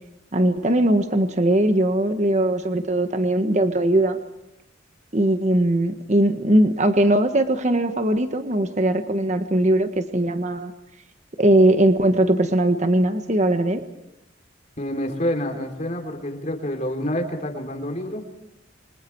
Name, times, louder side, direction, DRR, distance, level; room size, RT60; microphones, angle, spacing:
voice 1, 0.3-4.2 5.1-10.7 11.4-13.8, right 1 dB, 35° right, 8 dB, 1.4 m, -20 dB
voice 2, 14.8-18.2, left 1 dB, 40° left, 4 dB, 3.4 m, -27 dB
30.0 x 25.5 x 4.6 m, 0.84 s
head